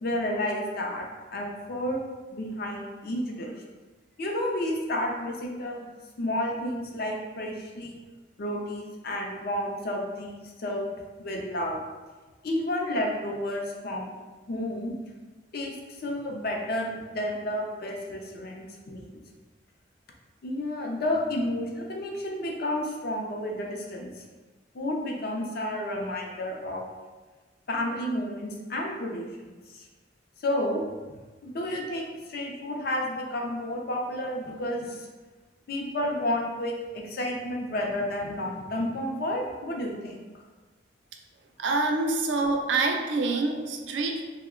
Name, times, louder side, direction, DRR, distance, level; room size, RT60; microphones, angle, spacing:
voice 1, 0.0-2.0 2.3-3.5 4.2-5.8 6.2-7.9 8.4-10.9 11.2-11.8 12.4-14.1 14.5-14.9 15.5-15.8 16.0-19.1 20.4-24.2 24.7-26.9 27.7-29.9 30.4-30.8 31.4-35.1 35.7-40.3, left 1 dB, 55° left, 0 dB, 0.5 m, -31 dB
voice 2, 41.6-44.2, right 3 dB, 70° right, 3 dB, 0.4 m, -26 dB
2.8 x 2.1 x 3.6 m, 1.3 s
head